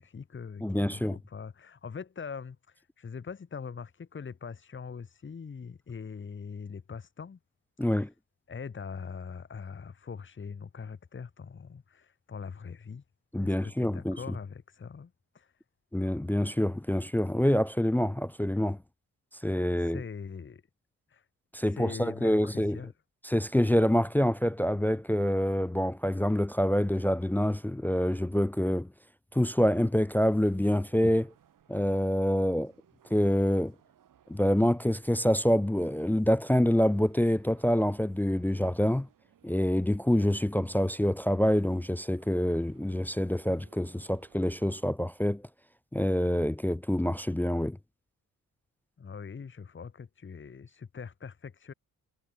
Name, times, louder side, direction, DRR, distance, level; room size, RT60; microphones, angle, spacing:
voice 1, 0.0-7.4 7.8-8.1 8.5-13.0 13.4-15.6 19.8-20.6 21.1-21.3 21.7-22.9 49.0-51.7, left 6 dB, 35° left, 1.6 m, -42 dB
voice 2, 0.6-1.2 7.8-8.1 13.3-14.2 15.9-18.8 19.4-20.0 21.5-22.8 23.2-28.9 29.3-31.3 31.7-32.7 33.1-33.7 34.3-39.1 39.4-45.4 45.9-47.8, equal, 5° left, 0.4 m, -26 dB
sound 1, 29.7-44.8, right 9 dB, 70° right, 3.5 m, -64 dB
cardioid pair, 80°, 34 cm